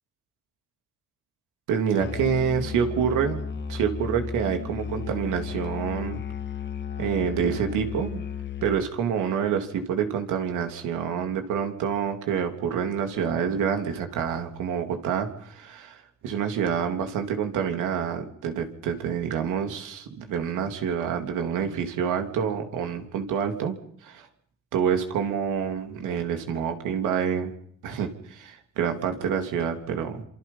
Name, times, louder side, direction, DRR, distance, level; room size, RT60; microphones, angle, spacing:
voice 1, 1.7-6.2 7.0-8.2 8.6-23.8 24.0-24.3 24.7-27.5 27.8-30.2, right 7 dB, 90° right, 5 dB, 3.3 m, -27 dB
Musical instrument, 1.9-9.0, left 6 dB, 35° left, 1.9 m, -34 dB
27.0 x 26.0 x 5.6 m, 0.64 s
cardioid pair, 90°, 30 cm